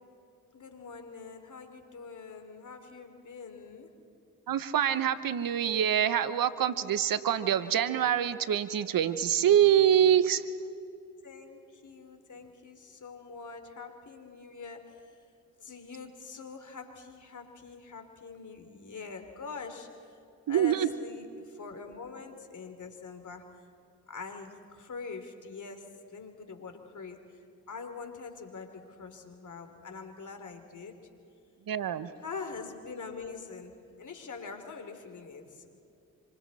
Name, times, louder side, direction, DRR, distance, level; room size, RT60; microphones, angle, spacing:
voice 1, 0.5-4.0 11.2-15.1 15.6-20.2 20.5-23.6 24.1-31.1 32.2-35.8, left 4 dB, 55° left, 6 dB, 3.4 m, -44 dB
voice 2, 4.5-10.4 20.5-20.9 31.7-32.1, right 10 dB, 65° right, 13 dB, 1.1 m, -25 dB
27.0 x 25.5 x 4.3 m, 2.6 s
supercardioid pair, 45°, 36 cm